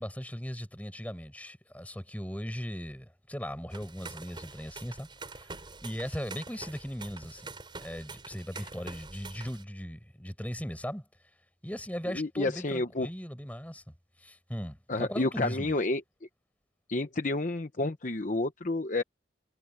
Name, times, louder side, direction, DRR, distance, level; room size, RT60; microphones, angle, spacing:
voice 1, 0.0-5.5 5.8-7.5 7.8-11.1 11.6-13.8 14.2-15.8, equal, 10° left, 5.2 m, -38 dB
sound 1, 3.7-9.6, right 3 dB, 25° right, 7.7 m, -45 dB
voice 2, 12.1-13.1 14.9-16.0 16.9-19.0, left 2 dB, 45° left, 0.9 m, -30 dB
head